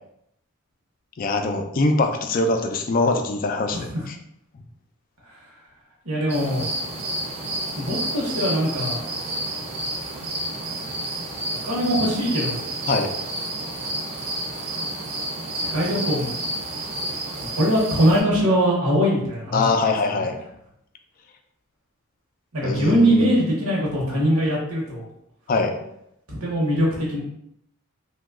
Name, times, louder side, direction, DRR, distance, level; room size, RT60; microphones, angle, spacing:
voice 1, 1.2-4.2 12.9-13.1 19.5-20.4 22.6-23.3 25.5-25.7, left 3 dB, 40° left, 5 dB, 0.4 m, -23 dB
voice 2, 3.7-4.0 6.0-6.7 7.8-9.0 11.6-12.6 15.6-16.3 17.4-19.6 20.1-20.3 22.5-25.1 26.3-27.2, equal, 70° right, -4 dB, 0.9 m, -22 dB
Ambiance Nature Night Cricket Calm Loop Stereo, 6.3-18.2, right 1 dB, 30° right, 0.6 m, -30 dB
2.9 x 2.2 x 3.5 m, 0.77 s
head